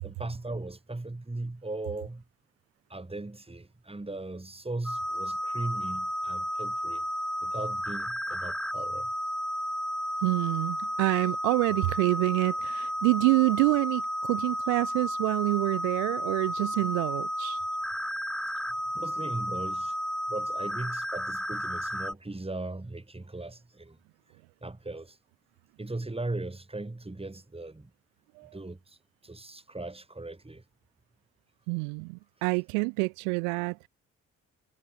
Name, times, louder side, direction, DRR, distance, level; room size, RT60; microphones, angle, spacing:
voice 1, 0.0-2.2 2.9-7.0 7.4-9.1 18.9-19.9 20.3-24.0 24.6-25.2 25.8-27.9 28.5-28.8 29.2-30.6, right 2 dB, 15° right, 4.3 m, -38 dB
sound 1, 4.8-22.1, equal, ahead, 4.8 m, -32 dB
voice 2, 10.2-17.6 28.4-28.6 31.7-33.9, right 40 dB or more, 75° right, 1.1 m, -27 dB
figure-of-eight pair, 45°, 39 cm